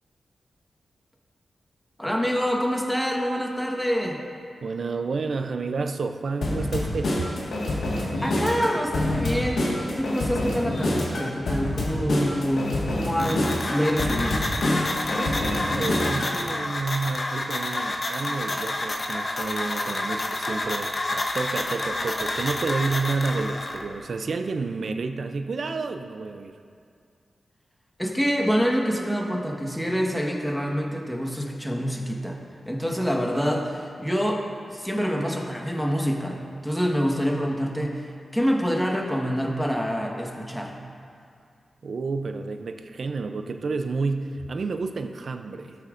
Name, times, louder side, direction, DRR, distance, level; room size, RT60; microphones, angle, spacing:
voice 1, 2.0-4.2 8.2-14.4 28.0-32.4 32.6-34.4 34.7-38.1 38.3-40.7, equal, 5° left, 0 dB, 1.3 m, -26 dB
voice 2, 4.6-7.3 15.2-26.6 41.8-45.8, right 4 dB, 70° right, 7 dB, 0.5 m, -30 dB
sound 1, 6.4-16.3, left 1 dB, 85° left, 1.6 m, -27 dB
sound 2, 13.2-23.8, left 2 dB, 50° left, 0.9 m, -29 dB
16.5 x 6.6 x 2.5 m, 2.3 s
cardioid pair, 55°, 0 cm